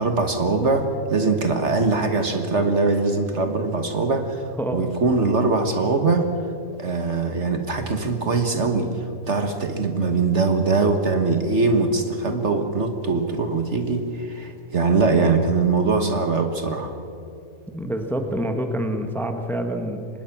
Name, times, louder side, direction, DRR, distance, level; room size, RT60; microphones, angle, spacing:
voice 1, 0.0-6.3 6.8-8.9 9.3-16.9, right 3 dB, 50° right, 6 dB, 1.7 m, -22 dB
voice 2, 4.5-4.9 17.7-20.1, right 1 dB, ahead, 5 dB, 1.4 m, -27 dB
25.0 x 20.0 x 6.0 m, 2.6 s
omnidirectional pair, 1.6 m